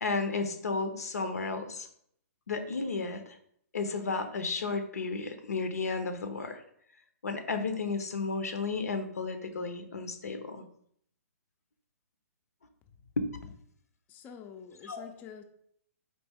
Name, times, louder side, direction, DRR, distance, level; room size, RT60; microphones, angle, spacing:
voice 1, 0.0-1.9 2.5-3.4 3.7-6.6 7.2-10.6 13.2-13.5 14.8-15.0, left 4 dB, 80° left, 7 dB, 0.5 m, -33 dB
voice 2, 14.1-15.4, left 7 dB, 20° left, 5 dB, 0.3 m, -47 dB
4.1 x 2.7 x 3.4 m, 0.67 s
hypercardioid pair, 125°, 8 cm